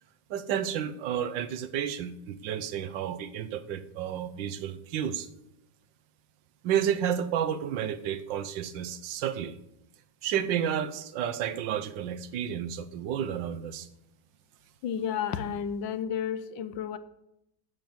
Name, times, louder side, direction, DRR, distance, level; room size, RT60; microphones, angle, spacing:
voice 1, 0.3-5.3 6.6-9.6 10.2-13.9, right 9 dB, 80° right, 12 dB, 1.4 m, -31 dB
voice 2, 14.8-17.0, left 8 dB, 85° left, 13 dB, 1.4 m, -32 dB
9.2 x 7.7 x 7.1 m, 0.84 s
omnidirectional pair, 2.0 m